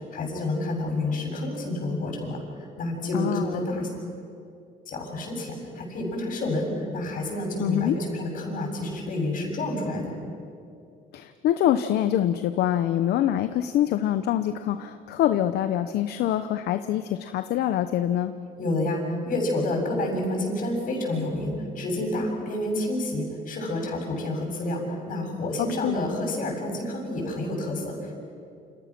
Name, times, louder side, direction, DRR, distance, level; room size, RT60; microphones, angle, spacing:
voice 1, 0.1-3.9 4.9-10.1 18.6-28.1, left 1 dB, 55° left, 1 dB, 7.3 m, -29 dB
voice 2, 3.1-3.7 7.6-7.9 11.1-18.3 25.6-25.9, left 11 dB, 75° left, 10 dB, 0.9 m, -25 dB
29.0 x 27.5 x 6.1 m, 2.5 s
cardioid pair, 110°, 17 cm